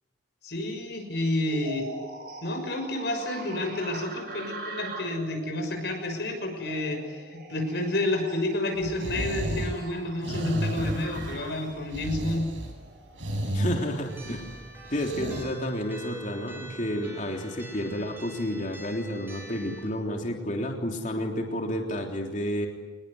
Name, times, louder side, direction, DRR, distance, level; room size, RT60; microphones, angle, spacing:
voice 1, 0.4-1.9 2.4-12.5, left 1 dB, 60° left, 4 dB, 6.2 m, -30 dB
sound 1, 1.4-13.2, right 2 dB, 50° right, 6.5 m, -42 dB
sound 2, 8.8-15.4, right 1 dB, 90° right, 7.2 m, -33 dB
voice 2, 13.5-14.6 14.9-22.7, equal, 40° left, 2 dB, 3.5 m, -31 dB
sound 3, 14.1-19.8, equal, 10° right, 6.5 m, -46 dB
26.5 x 21.0 x 9.9 m, 1.2 s
head